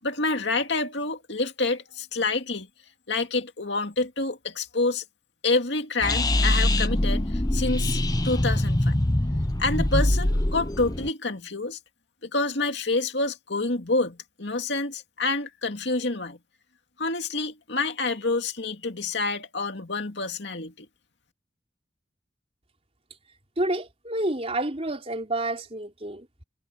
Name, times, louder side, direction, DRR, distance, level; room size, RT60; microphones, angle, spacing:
voice 1, 0.0-2.7 3.1-5.0 5.4-8.0 8.2-9.0 9.6-11.8 12.2-16.4 17.0-20.9, left 3 dB, 65° left, 2.6 m, -28 dB
sound 1, 6.0-11.1, left 1 dB, 20° left, 0.9 m, -23 dB
voice 2, 23.6-26.3, right 1 dB, 30° right, 3.9 m, -29 dB
head